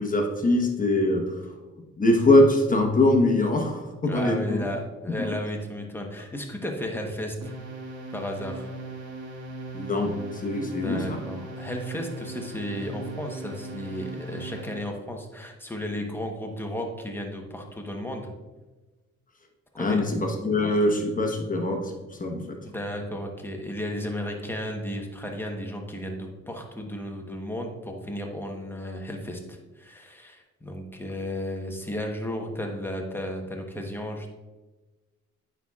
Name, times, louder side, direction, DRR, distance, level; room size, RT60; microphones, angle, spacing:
voice 1, 0.0-1.5 2.0-4.6 5.2-5.3 9.7-11.2 19.8-21.9 22.2-22.6, left 1 dB, 25° left, 2 dB, 1.2 m, -23 dB
voice 2, 4.1-7.5 8.1-8.7 10.6-18.3 19.7-20.1 22.6-34.3, equal, 5° left, 2 dB, 1.1 m, -34 dB
sound 1, 7.4-15.0, right 2 dB, 75° right, 1.5 m, -38 dB
8.8 x 5.6 x 2.4 m, 1.2 s
cardioid pair, 90°, 30 cm